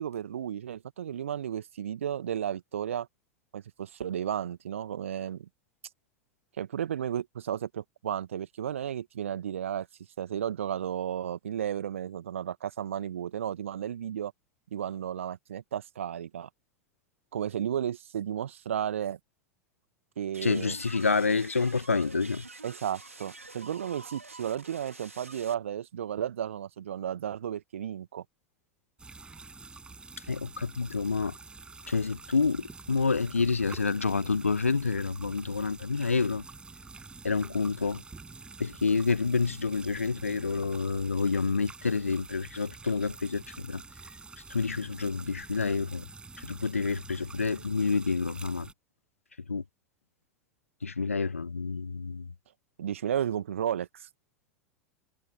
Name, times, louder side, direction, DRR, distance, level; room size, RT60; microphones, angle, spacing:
voice 1, 0.0-3.1 3.5-5.5 6.6-9.9 10.2-14.3 14.7-16.5 17.3-19.2 20.2-20.8 22.6-28.2 52.8-54.1, right 9 dB, 70° right, 1.7 m, -33 dB
sound 1, 20.3-25.5, right 3 dB, 85° right, 2.9 m, -47 dB
voice 2, 20.4-22.5 30.3-31.3 31.9-36.4 37.2-38.0 38.6-43.8 44.5-46.1 46.4-48.7 49.5-49.6 50.8-52.3, left 4 dB, 80° left, 1.4 m, -28 dB
sound 2, 29.0-48.7, right 4 dB, 15° right, 7.2 m, -48 dB
figure-of-eight pair, 80°, 7 cm